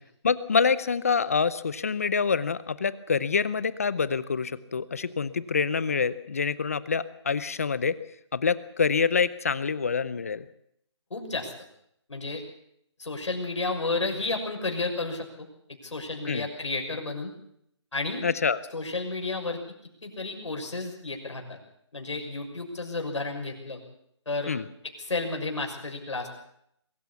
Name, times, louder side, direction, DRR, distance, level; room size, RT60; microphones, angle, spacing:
voice 1, 0.2-8.0 8.3-10.5 16.3-16.5 18.2-18.6 24.5-24.7, left 5 dB, 30° left, 17 dB, 0.7 m, -26 dB
voice 2, 11.1-11.5 12.1-12.4 13.0-15.5 15.8-17.3 17.9-18.3 18.7-19.6 20.0-21.6 21.9-23.8 24.3-24.6 24.8-26.3, left 3 dB, 85° left, 3 dB, 6.3 m, -32 dB
22.5 x 14.0 x 8.4 m, 0.73 s
hypercardioid pair, 175°, 15 cm